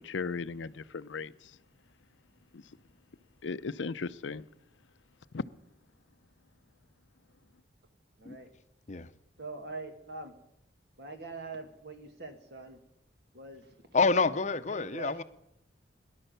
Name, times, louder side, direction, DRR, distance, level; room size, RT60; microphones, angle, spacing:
voice 1, 0.0-1.5 2.5-2.6 3.4-4.4 5.3-5.4, left 4 dB, 90° left, 0.6 m, -36 dB
voice 2, 8.2-8.5 9.4-10.3 11.0-12.8 13.3-13.7 14.7-15.2, right 3 dB, 60° right, 2.0 m, -43 dB
voice 3, 13.9-15.2, left 4 dB, 40° left, 0.7 m, -27 dB
18.0 x 11.0 x 6.8 m
head